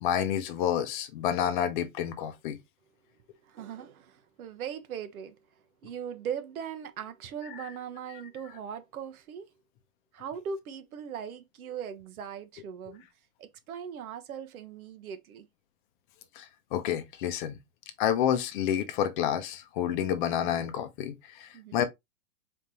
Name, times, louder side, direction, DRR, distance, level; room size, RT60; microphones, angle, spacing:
voice 1, 0.0-2.6 16.4-16.5 16.7-17.6 18.0-21.8, left 9 dB, 35° left, 0.7 m, -29 dB
voice 2, 3.4-5.4 5.8-9.5 10.1-13.0 13.4-15.5 21.5-21.8, right 7 dB, 70° right, 1.1 m, -39 dB
4.3 x 3.6 x 2.8 m
hypercardioid pair, 145°, 44 cm